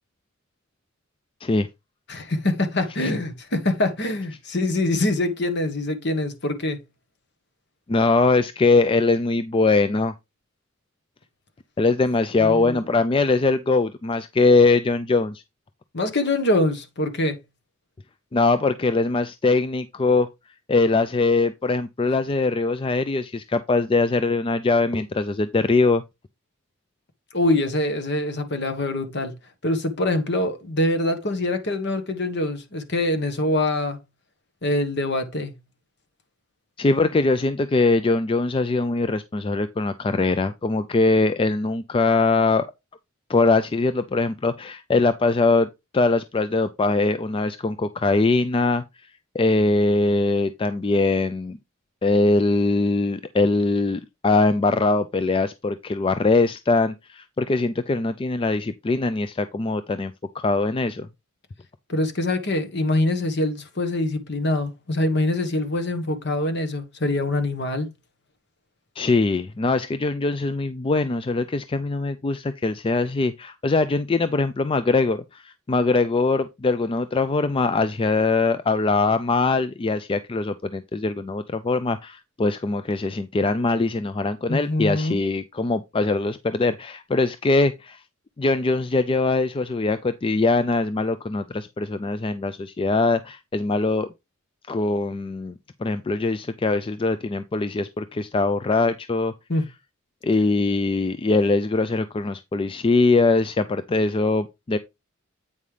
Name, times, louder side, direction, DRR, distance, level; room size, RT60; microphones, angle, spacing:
voice 1, 2.1-6.8 12.4-12.8 15.9-17.4 27.3-29.4 29.6-34.0 34.6-35.5 61.9-67.9 84.5-85.2 99.5-99.6, left 1 dB, 55° left, 1.3 m, -24 dB
voice 2, 7.9-10.1 11.8-15.4 18.3-20.3 20.7-26.0 36.8-42.7 43.3-45.7 45.9-48.8 49.3-51.6 52.0-60.1 60.4-61.1 69.0-88.0 88.4-94.1 94.7-99.3 100.2-104.8, left 3 dB, 25° left, 0.3 m, -22 dB
8.4 x 5.4 x 3.2 m
head